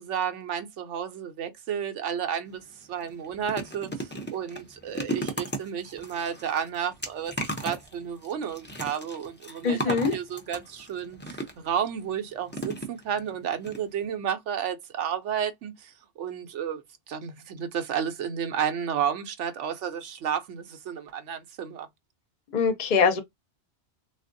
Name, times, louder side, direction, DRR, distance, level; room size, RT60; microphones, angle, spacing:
voice 1, 0.0-2.6 2.9-21.9, right 8 dB, 85° right, 1.0 m, -32 dB
sound 1, 2.5-2.6 3.0-11.8 12.5-13.3 13.6-13.8 14.0-14.1, right 1 dB, 20° left, 0.3 m, -36 dB
voice 2, 9.6-10.1 22.5-23.2, left 5 dB, 50° left, 0.7 m, -23 dB
3.5 x 2.4 x 2.5 m
omnidirectional pair, 1.2 m